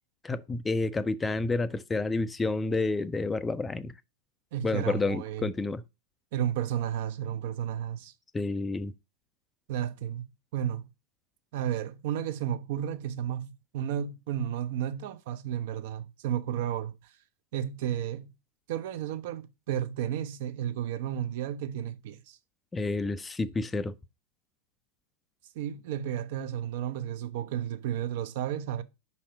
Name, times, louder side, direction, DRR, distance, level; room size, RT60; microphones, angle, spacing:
voice 1, 0.2-3.9 4.6-5.8 8.3-8.9 22.7-23.9, left 3 dB, 15° left, 0.3 m, -29 dB
voice 2, 4.5-5.5 6.3-8.1 9.7-10.2 10.5-10.9 11.5-16.9 17.5-18.3 18.7-22.4 25.6-28.8, right 10 dB, 50° right, 0.5 m, -32 dB
5.5 x 4.2 x 4.3 m
figure-of-eight pair, 90°, 0 cm